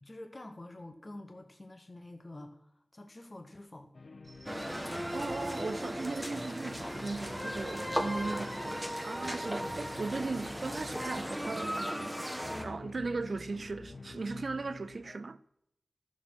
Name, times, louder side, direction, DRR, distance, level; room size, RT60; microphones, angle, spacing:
voice 1, 0.0-3.9 7.6-8.1, left 1 dB, 30° left, 0.9 m, -48 dB
sound 1, 3.9-15.2, left 3 dB, 55° left, 0.5 m, -49 dB
sound 2, 4.2-11.2, right 2 dB, 40° right, 1.6 m, -56 dB
sound 3, 4.5-12.7, equal, 5° right, 1.2 m, -37 dB
voice 2, 5.1-12.3 12.6-15.4, right 3 dB, 60° right, 0.3 m, -38 dB
12.5 x 6.2 x 6.0 m
wide cardioid pair, 80°, 0 cm